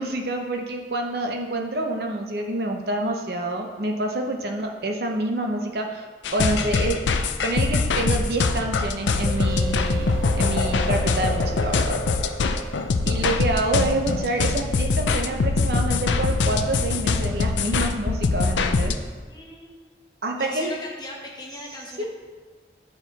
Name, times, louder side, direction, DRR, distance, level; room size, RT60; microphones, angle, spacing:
voice 1, 0.0-6.1 6.3-7.1 7.4-12.0 13.1-19.0 20.2-20.7 22.0-22.1, right 2 dB, 60° right, 3 dB, 0.7 m, -27 dB
sound 1, 6.2-18.9, left 4 dB, 85° left, 0.5 m, -23 dB
sound 2, 9.2-14.6, right 7 dB, 85° right, 1.6 m, -37 dB
voice 2, 19.3-19.7 20.4-22.0, left 2 dB, 25° left, -1 dB, 1.0 m, -39 dB
9.1 x 4.6 x 4.1 m, 1.4 s
head